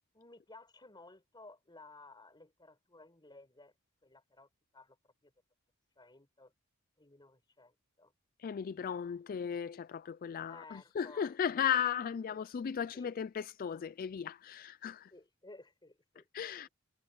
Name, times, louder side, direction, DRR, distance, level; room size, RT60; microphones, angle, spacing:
voice 1, 0.1-3.7 4.0-5.0 5.2-5.3 6.0-6.5 7.0-8.1 10.5-11.3 12.3-12.4 12.9-13.2 15.1-16.3, left 2 dB, 20° left, 4.7 m, -56 dB
voice 2, 8.4-15.1 16.3-16.7, left 8 dB, 45° left, 0.3 m, -36 dB
head